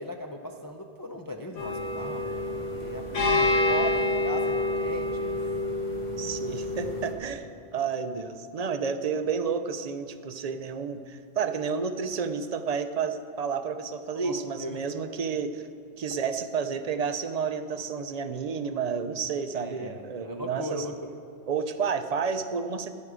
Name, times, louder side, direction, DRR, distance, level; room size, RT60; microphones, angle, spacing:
voice 1, 0.0-3.9 4.2-5.4 14.1-14.9 19.5-21.1, left 1 dB, 25° left, 3 dB, 0.5 m, -38 dB
sound 1, 1.6-7.1, left 2 dB, 80° left, 2.0 m, -28 dB
voice 2, 6.2-7.5 7.7-15.6 16.0-20.9 21.5-22.9, right 6 dB, 45° right, 9 dB, 0.5 m, -31 dB
14.0 x 10.5 x 4.9 m, 2.3 s
omnidirectional pair, 1.2 m